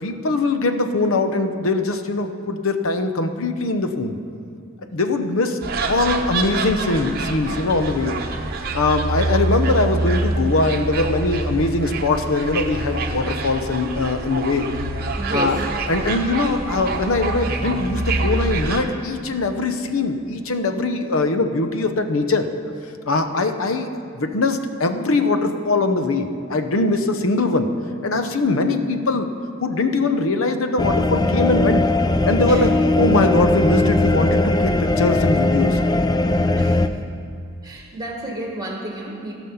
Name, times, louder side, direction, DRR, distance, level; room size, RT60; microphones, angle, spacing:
voice 1, 0.0-4.2 4.9-8.1 8.7-14.7 15.3-15.6 15.9-22.4 23.0-23.9 24.1-27.7 28.0-29.3 29.6-31.8 32.2-35.8, left 2 dB, 75° left, 8 dB, 0.8 m, -21 dB
sound 1, 5.6-18.8, right 2 dB, 45° right, 0.8 m, -26 dB
voice 2, 15.2-15.6 32.5-32.6 36.6-36.8 37.6-39.4, right 1 dB, 20° right, 0 dB, 1.5 m, -31 dB
sound 2, 30.8-36.9, left 2 dB, 20° left, 0.3 m, -19 dB
16.0 x 6.2 x 5.6 m, 2.5 s
head